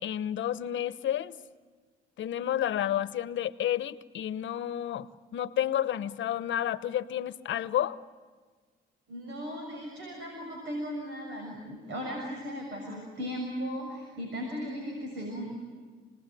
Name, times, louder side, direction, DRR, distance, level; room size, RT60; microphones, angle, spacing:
voice 1, 0.0-1.4 2.2-8.0, left 11 dB, 70° left, 14 dB, 1.0 m, -31 dB
voice 2, 9.1-15.6, equal, 70° right, 0 dB, 6.6 m, -37 dB
29.0 x 19.5 x 9.2 m, 1.5 s
cardioid pair, 90°, 20 cm